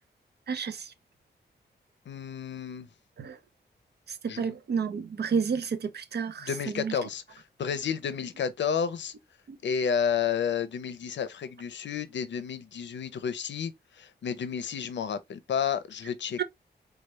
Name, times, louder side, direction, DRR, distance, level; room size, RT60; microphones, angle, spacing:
voice 1, 0.5-0.9 3.2-3.4 4.2-6.5 6.8-6.9 9.5-9.6 16.4-16.5, right 6 dB, 65° right, 0.7 m, -30 dB
voice 2, 2.1-2.9 4.3-4.6 6.4-9.1 9.6-16.4, left 7 dB, 90° left, 0.7 m, -31 dB
4.6 x 2.4 x 3.1 m
wide cardioid pair, 110°, 18 cm